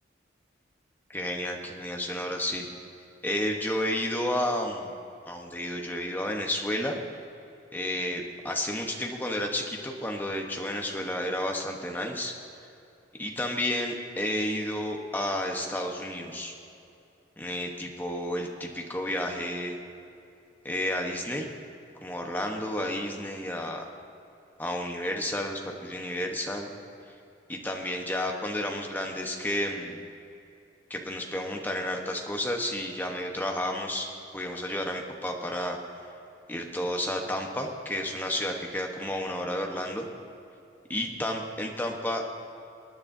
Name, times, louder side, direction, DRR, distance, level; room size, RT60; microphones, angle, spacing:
voice 1, 1.1-2.7 3.2-4.9 5.3-7.0 7.7-12.3 13.2-16.5 17.4-19.8 20.6-21.5 22.0-23.8 24.6-26.7 27.5-30.0 30.9-34.1 34.3-35.8 36.5-40.0 40.9-42.3, left 1 dB, 10° left, 1 dB, 1.0 m, -31 dB
24.0 x 9.7 x 2.7 m, 2.7 s
head